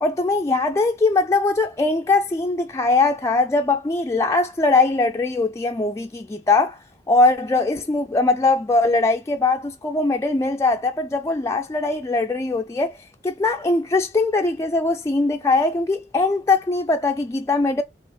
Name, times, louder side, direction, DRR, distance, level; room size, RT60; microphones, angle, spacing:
voice 1, 0.0-6.8 7.1-13.0 13.2-17.8, left 3 dB, 15° left, 0.3 m, -21 dB
5.5 x 2.5 x 3.7 m
head